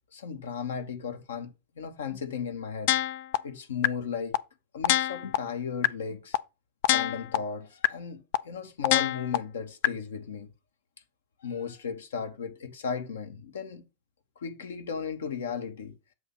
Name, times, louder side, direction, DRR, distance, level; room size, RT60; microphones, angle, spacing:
voice 1, 0.1-2.9 3.4-4.4 4.7-6.4 6.9-10.5 11.4-13.8 14.4-15.9, left 6 dB, 65° left, 0.8 m, -35 dB
sound 1, 2.9-3.4 3.8-3.9 4.3-4.4 4.8-5.4 5.8-5.9 6.3-6.4 6.8-7.4 7.8-7.9 8.3-8.4 8.8-9.4 9.8-9.9, left 15 dB, 50° left, 0.3 m, -23 dB
7.6 x 2.8 x 5.8 m
figure-of-eight pair, 90°, 0 cm